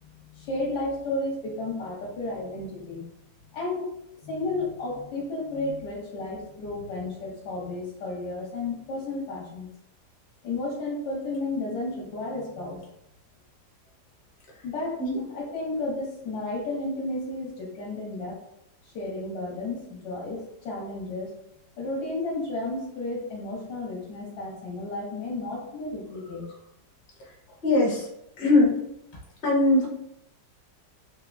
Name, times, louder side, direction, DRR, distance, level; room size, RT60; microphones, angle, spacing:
voice 1, 0.0-3.1 3.5-3.9 4.2-9.7 10.4-12.8 14.6-18.4 18.9-21.4 21.8-26.6 27.5-27.6, left 2 dB, 65° left, -2 dB, 1.2 m, -32 dB
voice 2, 27.6-28.1 28.4-28.8 29.4-29.9, left 2 dB, 40° left, -3 dB, 0.8 m, -20 dB
3.4 x 2.9 x 2.4 m, 0.78 s
omnidirectional pair, 2.0 m